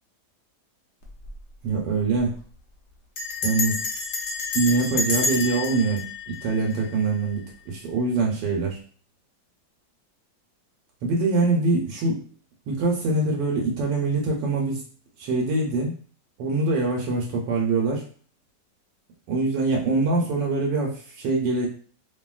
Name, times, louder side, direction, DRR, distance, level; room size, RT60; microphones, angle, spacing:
Bell, 1.0-1.4 1.7-1.8 2.0-2.4 3.2-7.2, left 4 dB, 80° left, 0.6 m, -29 dB
voice 1, 1.6-2.4 3.4-3.8 4.5-8.8 11.0-12.2 12.7-14.8 15.2-15.9 16.4-18.1 19.3-21.7, right 3 dB, 80° right, -1 dB, 1.3 m, -24 dB
2.7 x 2.6 x 2.3 m, 0.41 s
omnidirectional pair, 1.9 m